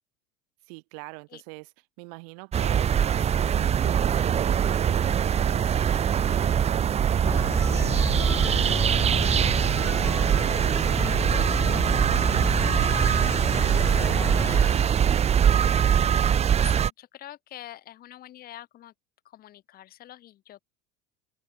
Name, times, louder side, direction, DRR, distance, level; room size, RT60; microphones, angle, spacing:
voice 1, 0.7-1.7 2.0-13.0 13.6-15.3, right 37 dB, 75° right, 6.7 m, -43 dB
sound 1, 2.5-16.9, right 8 dB, 30° right, 1.4 m, -23 dB
sound 2, 7.3-14.8, left 3 dB, 10° left, 3.2 m, -31 dB
voice 2, 16.4-18.9 19.2-20.6, left 13 dB, 50° left, 6.1 m, -45 dB
open air
supercardioid pair, 105°, 20 cm